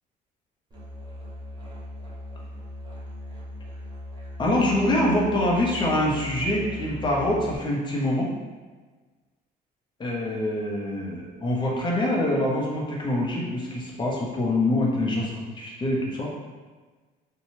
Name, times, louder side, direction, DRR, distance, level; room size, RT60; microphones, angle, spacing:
Musical instrument, 0.7-7.6, left 1 dB, 25° right, 0.8 m, -39 dB
voice 1, 4.4-8.3 10.0-16.3, left 1 dB, 25° left, -3 dB, 0.7 m, -25 dB
2.7 x 2.2 x 3.0 m, 1.4 s
cardioid pair, 110°, 17 cm